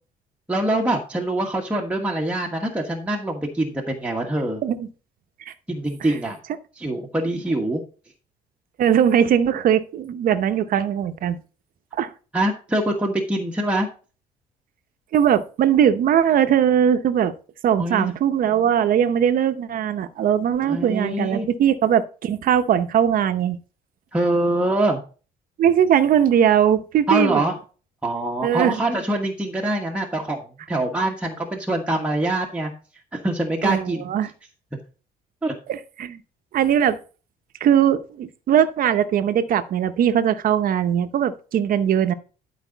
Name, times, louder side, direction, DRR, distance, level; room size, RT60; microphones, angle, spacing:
voice 1, 0.5-4.6 5.7-6.4 6.8-7.8 12.3-13.9 17.8-18.1 20.6-21.5 24.1-25.0 27.1-27.6 28.0-32.7 33.1-34.1 35.4-35.5, right 1 dB, 5° right, 1.4 m, -24 dB
voice 2, 8.8-11.4 12.0-12.1 15.1-17.3 17.6-23.6 25.6-27.4 28.4-28.8 33.6-34.3 35.7-36.2 36.5-37.0 37.6-42.1, right 9 dB, 55° right, 0.9 m, -20 dB
11.5 x 5.0 x 4.0 m
cardioid pair, 110°, 17 cm